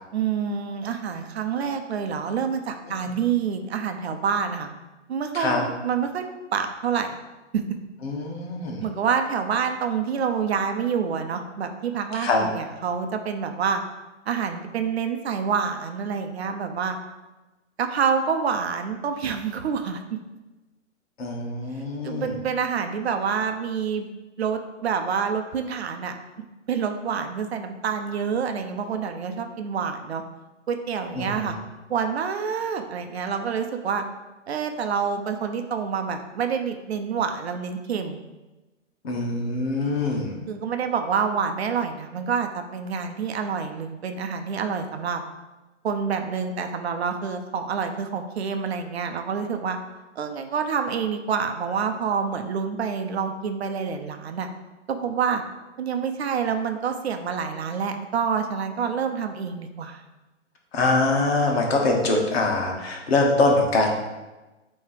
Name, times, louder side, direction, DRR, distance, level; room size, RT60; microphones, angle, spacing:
voice 1, 0.1-4.7 5.1-6.3 6.5-7.2 7.5-7.6 8.8-13.8 14.3-17.0 17.8-20.0 22.0-24.1 24.4-26.2 26.7-30.2 30.7-31.6 31.9-34.0 34.5-38.2 40.5-45.2 45.8-49.8 50.2-54.5 54.9-55.4 55.8-60.0, right 6 dB, 55° right, 6 dB, 0.8 m, -27 dB
voice 2, 8.0-8.8 12.1-12.5 21.2-22.4 31.2-31.5 39.0-40.3 60.7-63.9, left 2 dB, 55° left, 1 dB, 1.6 m, -23 dB
8.2 x 3.2 x 4.7 m, 1.1 s
figure-of-eight pair, 125°, 37 cm